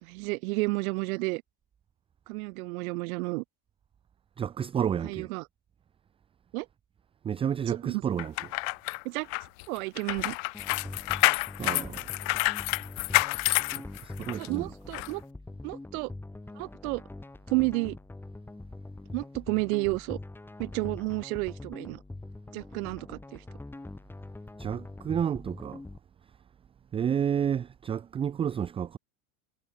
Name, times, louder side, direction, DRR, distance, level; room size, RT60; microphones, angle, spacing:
voice 1, 0.0-1.4 2.3-3.4 5.0-5.4 6.5-6.7 7.7-8.0 9.0-9.3 9.7-10.4 14.4-15.2 15.6-16.1 16.6-17.0 17.5-18.0 19.1-20.2 20.6-22.0 22.5-23.4, right 26 dB, 85° right, 1.2 m, -31 dB
voice 2, 4.4-5.3 7.2-8.3 11.6-12.1 13.7-14.7 24.6-25.8 26.9-29.0, right 8 dB, 15° right, 0.3 m, -30 dB
sound 1, 8.2-14.5 14.9-15.1, left 40 dB or more, 70° left, 0.7 m, -28 dB
sound 2, 10.5-26.0, left 2 dB, 5° left, 1.0 m, -43 dB
cardioid pair, 145°, 42 cm